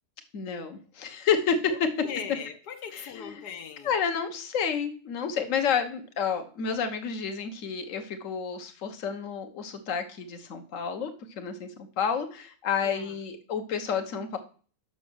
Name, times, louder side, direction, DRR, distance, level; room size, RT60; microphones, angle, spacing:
voice 1, 0.3-1.7 2.9-3.3 3.8-11.1 11.4-11.7 12.0-14.4, left 6 dB, 55° left, 1.4 m, -30 dB
voice 2, 1.7-3.9 12.8-13.2, left 7 dB, 85° left, 1.4 m, -40 dB
7.0 x 6.2 x 6.2 m
omnidirectional pair, 1.7 m